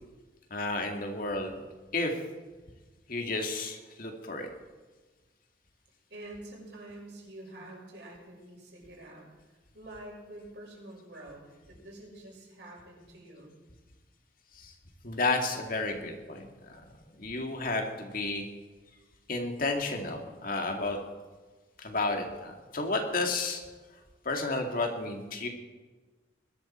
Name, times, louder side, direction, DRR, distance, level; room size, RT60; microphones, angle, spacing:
voice 1, 0.5-1.6 1.9-2.1 3.1-4.5 14.5-14.7 15.0-16.8 17.2-18.5 19.3-21.0 21.8-23.6 24.2-25.5, left 3 dB, 50° left, 3 dB, 2.3 m, -32 dB
voice 2, 6.1-13.6, right 1 dB, 65° right, -2 dB, 6.3 m, -47 dB
21.0 x 13.0 x 4.5 m, 1.3 s
head